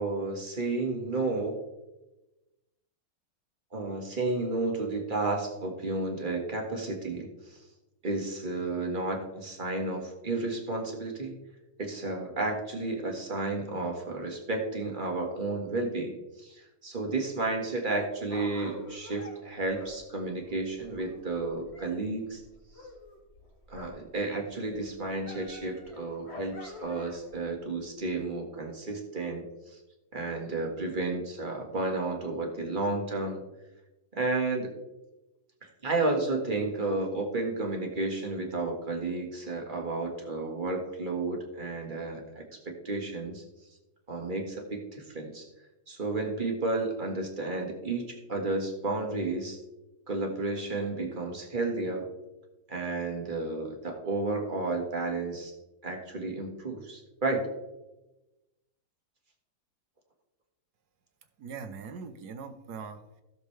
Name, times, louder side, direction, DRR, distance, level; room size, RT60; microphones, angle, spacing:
voice 1, 0.0-1.6 3.7-7.6 8.0-11.4 11.8-22.4 23.7-29.8 30.1-33.4 34.1-34.7 35.6-43.4 44.1-45.5 45.9-49.6 50.1-52.1 52.7-55.5 55.8-57.5, right 2 dB, 30° right, 2 dB, 1.6 m, -32 dB
Dog, 17.9-22.0 22.2-24.1 24.4-27.4 28.0-28.1, left 2 dB, 35° left, 2.2 m, -48 dB
voice 2, 61.4-63.2, right 5 dB, 65° right, 8 dB, 1.4 m, -41 dB
16.0 x 6.8 x 3.3 m, 1.0 s
omnidirectional pair, 2.0 m